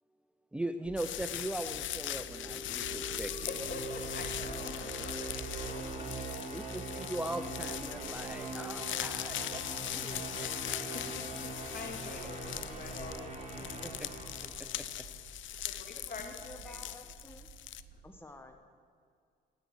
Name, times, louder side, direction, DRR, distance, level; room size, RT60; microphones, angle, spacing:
voice 1, 0.5-3.5 6.5-10.6 13.8-14.1 14.6-14.9 15.6-15.8, right 1 dB, 5° right, 8 dB, 0.6 m, -40 dB
sound 1, 0.8-18.2, right 5 dB, 70° right, 1.7 m, -52 dB
sound 2, 1.0-17.8, left 13 dB, 75° left, 0.5 m, -40 dB
sound 3, 2.0-15.1, right 2 dB, 30° right, 3.3 m, -42 dB
voice 2, 3.3-5.8 10.6-13.7 14.6-14.7 15.6-16.2 16.6-16.8 17.9-18.0, left 4 dB, 50° left, 3 dB, 2.5 m, -46 dB
voice 3, 16.0-17.5 18.0-18.6, left 1 dB, 10° left, 5 dB, 1.2 m, -51 dB
10.5 x 9.3 x 9.9 m, 2.2 s
cardioid pair, 90°, 20 cm